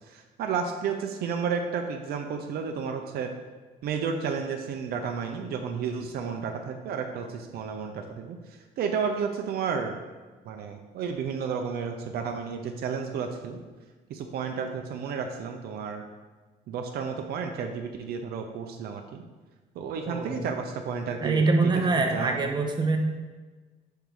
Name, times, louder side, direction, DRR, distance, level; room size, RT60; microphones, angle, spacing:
voice 1, 0.1-3.3 3.8-8.4 8.8-10.0 10.5-13.6 14.1-16.0 16.7-19.2 19.8-21.7 22.1-22.3, right 6 dB, 65° right, 4 dB, 0.6 m, -32 dB
voice 2, 20.1-20.5 21.2-23.0, right 3 dB, 25° right, 3 dB, 0.8 m, -24 dB
4.7 x 4.6 x 5.3 m, 1.3 s
cardioid pair, 110°, 17 cm